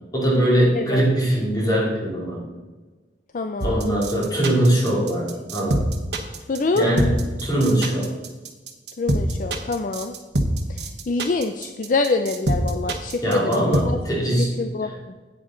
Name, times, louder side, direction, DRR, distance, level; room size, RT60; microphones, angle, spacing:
voice 1, 0.1-2.4 3.6-5.9 6.7-7.1 7.4-8.1 13.2-14.5 14.8-14.9, right 1 dB, 20° left, -5 dB, 3.0 m, -21 dB
voice 2, 0.7-1.1 3.3-3.9 6.5-6.9 9.0-10.1 10.7-14.0 14.6-14.9, left 3 dB, 45° left, 7 dB, 0.4 m, -25 dB
sound 1, 3.6-13.8, right 1 dB, 70° right, 1.2 m, -25 dB
9.2 x 9.1 x 3.8 m, 1.3 s
head